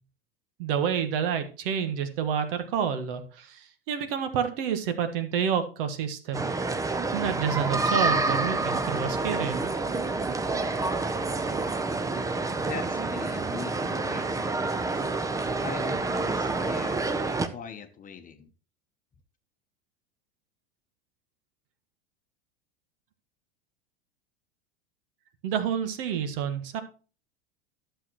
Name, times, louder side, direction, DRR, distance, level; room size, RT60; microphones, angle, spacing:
voice 1, 0.6-6.4 7.1-9.7 25.4-26.8, right 7 dB, 60° right, 9 dB, 1.4 m, -29 dB
sound 1, 6.3-17.5, right 3 dB, 10° right, 0.6 m, -28 dB
voice 2, 12.6-15.0 15.6-18.5, left 7 dB, 25° left, 8 dB, 1.0 m, -42 dB
12.0 x 6.8 x 3.0 m, 0.36 s
hypercardioid pair, 90°, 31 cm